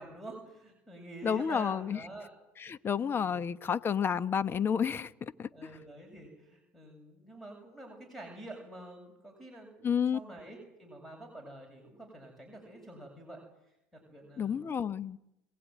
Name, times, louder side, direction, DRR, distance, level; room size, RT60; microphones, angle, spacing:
voice 1, 0.0-2.4 3.1-3.4 5.5-13.4 13.9-14.6, right 1 dB, 5° left, 7.9 m, -47 dB
voice 2, 1.2-2.0 2.6-5.7 9.8-10.2 14.4-15.2, left 7 dB, 30° left, 1.1 m, -31 dB
26.0 x 18.5 x 9.4 m
supercardioid pair, 90°, 7 cm